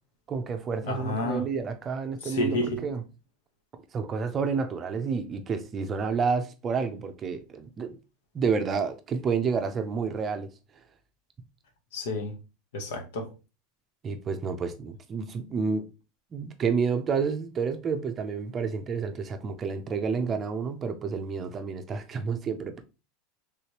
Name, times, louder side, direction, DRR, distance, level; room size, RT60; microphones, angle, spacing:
voice 1, 0.3-3.0 3.9-8.0 8.3-10.5 14.0-15.9 16.3-22.8, right 5 dB, 25° right, 0.5 m, -29 dB
voice 2, 0.8-1.5 2.2-2.8 11.9-12.4 12.7-13.3, left 1 dB, 85° left, 1.0 m, -30 dB
3.3 x 3.1 x 2.8 m
supercardioid pair, 135°, 0 cm